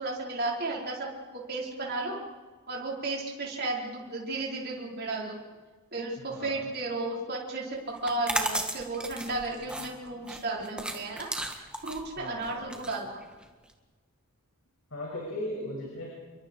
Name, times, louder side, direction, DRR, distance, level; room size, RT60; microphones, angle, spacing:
voice 1, 0.0-2.2 2.7-5.4 5.9-11.3 11.5-13.2, right 2 dB, 45° right, -3 dB, 5.2 m, -34 dB
voice 2, 6.3-6.7 12.2-13.0 14.9-16.1, left 1 dB, 65° left, -3 dB, 7.1 m, -38 dB
sound 1, 8.0-13.7, right 1 dB, 5° right, 1.8 m, -35 dB
29.5 x 23.5 x 4.9 m, 1.3 s
head